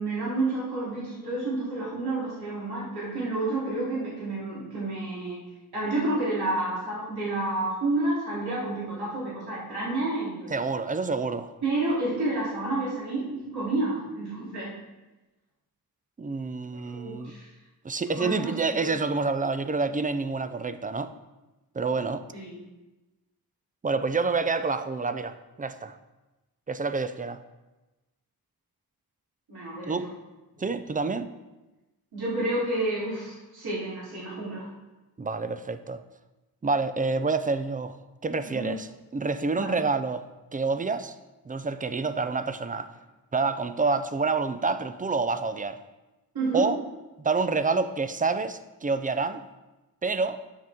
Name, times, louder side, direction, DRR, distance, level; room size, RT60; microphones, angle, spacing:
voice 1, 0.0-5.4 5.7-10.5 11.6-14.7 16.7-17.5 18.1-18.8 22.3-22.6 29.5-29.9 30.6-30.7 32.1-34.7 38.5-38.7 39.5-39.7 46.3-46.7, right 2 dB, 85° right, -8 dB, 3.3 m, -30 dB
voice 2, 10.5-11.5 16.2-17.3 17.8-21.1 21.7-22.2 23.8-25.9 26.7-27.4 29.9-30.0 30.6-31.3 35.2-36.0 36.6-37.9 38.2-40.2 40.5-41.1 41.5-42.9 43.3-45.8 46.5-46.8 47.2-49.4 50.0-50.4, right 4 dB, 25° right, 11 dB, 0.4 m, -28 dB
9.9 x 7.5 x 3.6 m, 1.1 s
wide cardioid pair, 120°, 37 cm